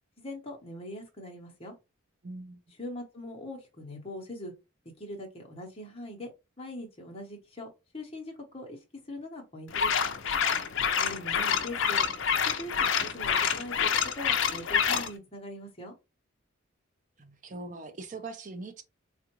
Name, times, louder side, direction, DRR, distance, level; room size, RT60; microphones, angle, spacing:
voice 1, 0.2-1.7 2.8-4.5 5.0-6.3 6.6-7.7 7.9-8.8 9.0-9.9 11.0-12.0 12.4-15.9, left 1 dB, 25° left, 0.9 m, -41 dB
voice 2, 2.2-2.6 17.2-18.8, right 3 dB, 35° right, 0.5 m, -41 dB
sound 1, 9.7-15.1, left 7 dB, 60° left, 0.4 m, -27 dB
3.4 x 2.4 x 2.9 m
head